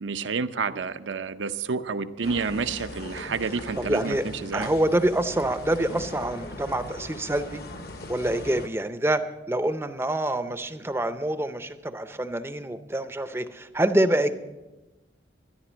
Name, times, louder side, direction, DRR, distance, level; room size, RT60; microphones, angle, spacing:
voice 1, 0.0-4.2 4.4-4.7, right 5 dB, 85° right, 11 dB, 0.6 m, -29 dB
sound 1, 2.2-8.7, left 2 dB, 55° left, 1.0 m, -40 dB
voice 2, 3.8-4.2 4.5-7.6 8.1-9.2 9.5-14.3, right 1 dB, 15° right, 10 dB, 0.5 m, -26 dB
13.0 x 10.5 x 6.2 m, 1.1 s
head